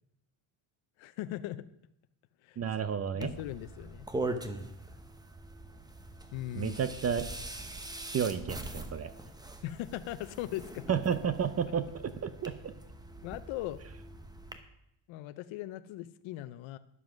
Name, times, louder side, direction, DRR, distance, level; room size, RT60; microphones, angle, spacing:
voice 1, 1.0-1.7 2.4-2.6 3.1-4.1 6.3-6.8 9.6-10.8 13.2-13.8 15.1-16.8, left 14 dB, 75° left, 12 dB, 0.7 m, -39 dB
voice 2, 2.6-3.3 6.5-7.3 8.1-9.1 10.9-12.5, right 7 dB, 35° right, 13 dB, 0.6 m, -31 dB
sound 1, 3.2-14.6, right 2 dB, 10° right, 0.9 m, -42 dB
11.0 x 7.3 x 6.2 m, 0.80 s
cardioid pair, 130°, 47 cm